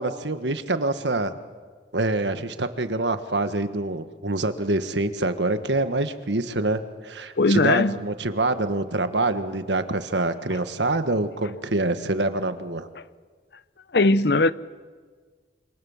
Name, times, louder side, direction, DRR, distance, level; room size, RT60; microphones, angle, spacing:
voice 1, 0.0-1.3 1.9-12.9, right 2 dB, 85° right, 1.6 m, -26 dB
voice 2, 7.4-8.0 13.9-14.5, left 2 dB, 65° left, 0.8 m, -19 dB
27.0 x 26.0 x 7.3 m
head